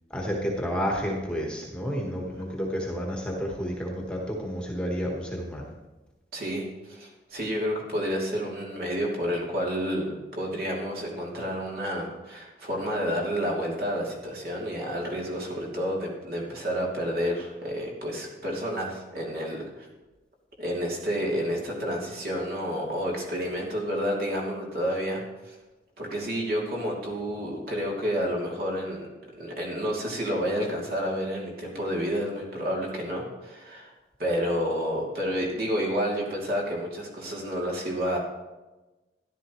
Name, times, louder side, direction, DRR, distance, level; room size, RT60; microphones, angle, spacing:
voice 1, 0.1-5.7, equal, 5° left, -1 dB, 1.3 m, -30 dB
voice 2, 6.3-19.9 20.6-25.5 26.0-33.9 34.2-38.2, equal, 55° right, -3 dB, 2.9 m, -30 dB
13.5 x 11.5 x 3.1 m, 1.1 s
head